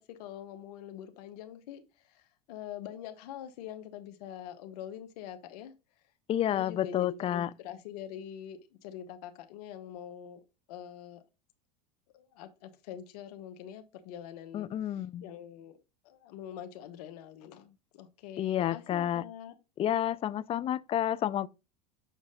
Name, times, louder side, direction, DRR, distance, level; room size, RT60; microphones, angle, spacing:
voice 1, 0.0-5.7 6.5-11.2 12.1-15.8 16.0-19.6, left 10 dB, 70° left, 1.0 m, -45 dB
voice 2, 6.3-7.5 14.5-15.2 18.4-19.2 19.8-21.5, left 11 dB, 30° left, 0.4 m, -30 dB
7.0 x 5.2 x 3.7 m
hypercardioid pair, 100°, 21 cm